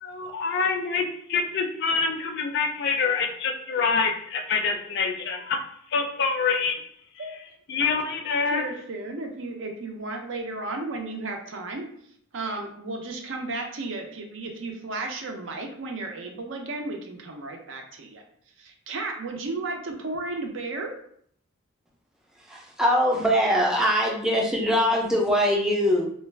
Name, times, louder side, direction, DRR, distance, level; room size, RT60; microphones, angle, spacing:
voice 1, 0.0-5.6 5.9-6.8 7.7-8.6, left 5 dB, 55° left, 5 dB, 0.4 m, -26 dB
voice 2, 8.5-11.9 12.3-18.2 18.6-21.0, right 2 dB, 65° right, 3 dB, 0.5 m, -34 dB
voice 3, 22.4-26.1, equal, 5° right, -2 dB, 0.4 m, -22 dB
2.3 x 2.1 x 3.2 m, 0.65 s
head